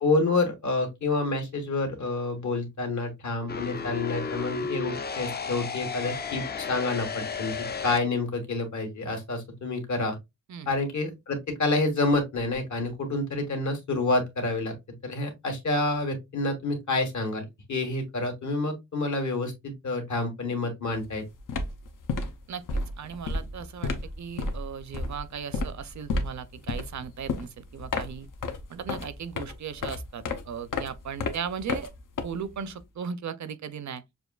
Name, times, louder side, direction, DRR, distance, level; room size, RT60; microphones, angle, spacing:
voice 1, 0.0-10.1 10.7-14.7 15.0-21.2, left 2 dB, 70° left, 1.5 m, -28 dB
sound 1, 3.5-8.0, left 5 dB, 35° left, 0.4 m, -33 dB
sound 2, 20.9-21.1 21.4-32.8, left 3 dB, 90° left, 0.8 m, -33 dB
voice 2, 22.5-23.9 24.2-28.3 28.7-31.9 32.2-34.0, right 7 dB, 65° right, 0.5 m, -37 dB
6.6 x 2.5 x 2.3 m
wide cardioid pair, 160°, 31 cm